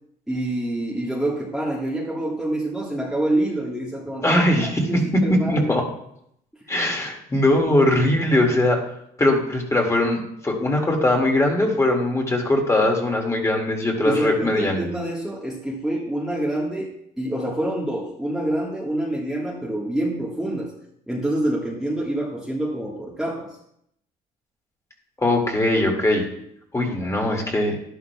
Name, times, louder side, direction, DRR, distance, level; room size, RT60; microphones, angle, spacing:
voice 1, 0.3-4.4 4.8-5.7 6.7-6.9 14.0-20.7 21.1-23.5, right 1 dB, 5° right, -4 dB, 1.5 m, -26 dB
voice 2, 4.2-5.9 6.7-8.8 9.2-14.8 25.2-26.2 26.7-27.8, left 1 dB, 15° left, 1 dB, 2.1 m, -20 dB
11.0 x 11.0 x 2.3 m, 0.75 s
cardioid pair, 110°, 17 cm